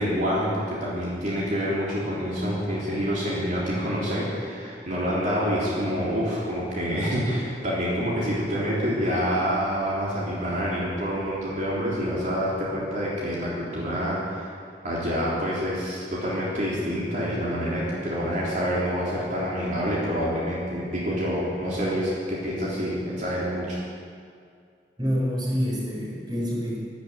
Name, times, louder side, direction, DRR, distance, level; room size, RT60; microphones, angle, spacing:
voice 1, 0.0-14.5 14.8-23.8, equal, 50° right, -7 dB, 3.6 m, -27 dB
voice 2, 25.0-26.8, equal, 25° right, -3 dB, 4.3 m, -27 dB
13.0 x 12.0 x 8.3 m, 2.2 s
head